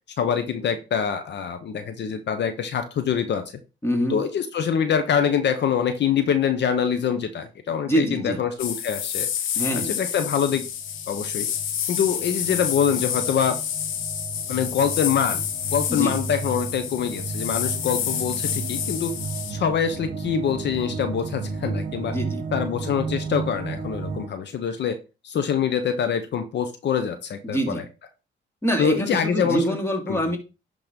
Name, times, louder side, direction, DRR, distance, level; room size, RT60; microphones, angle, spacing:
voice 1, 0.2-3.4 4.1-9.3 9.7-10.7 11.1-11.5 11.9-13.6 14.5-15.4 15.7-19.2 19.5-22.1 22.5-25.0 25.2-27.8 28.8-29.6 30.1-30.2, left 7 dB, 60° left, 9 dB, 1.0 m, -25 dB
voice 2, 3.8-4.2 7.9-8.4 9.5-9.9 15.9-16.2 22.1-22.4 27.4-27.8 28.6-30.4, equal, 10° left, 3 dB, 2.8 m, -25 dB
sound 1, 8.6-19.5, left 9 dB, 85° left, 1.2 m, -29 dB
sound 2, 10.6-24.3, right 4 dB, 40° right, 1.6 m, -34 dB
11.0 x 3.9 x 5.3 m, 0.31 s
cardioid pair, 90°, 20 cm